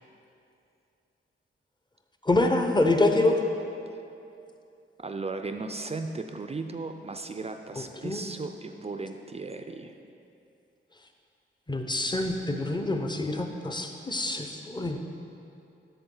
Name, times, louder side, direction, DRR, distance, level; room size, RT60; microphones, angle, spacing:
voice 1, 2.2-3.4 7.8-8.2 11.7-15.0, left 2 dB, 20° left, 4 dB, 0.7 m, -26 dB
voice 2, 5.0-10.0, right 3 dB, 30° right, 7 dB, 0.4 m, -36 dB
7.0 x 7.0 x 3.8 m, 2.6 s
cardioid pair, 60°, 21 cm